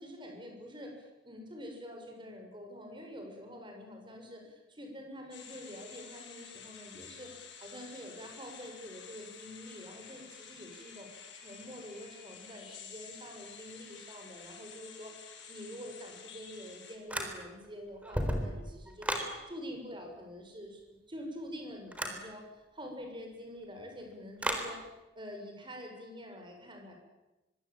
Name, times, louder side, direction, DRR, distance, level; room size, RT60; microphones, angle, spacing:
voice 1, 0.0-7.3 7.6-11.1 11.3-20.8 21.1-24.8 25.1-26.9, equal, 25° right, 2 dB, 7.0 m, -46 dB
sound 1, 5.3-17.0, left 7 dB, 80° left, 7.3 m, -51 dB
sound 2, 17.1-17.7 18.0-19.3 21.9-22.2 24.4-24.7, equal, 5° right, 4.0 m, -34 dB
24.5 x 24.0 x 9.0 m, 1.0 s
head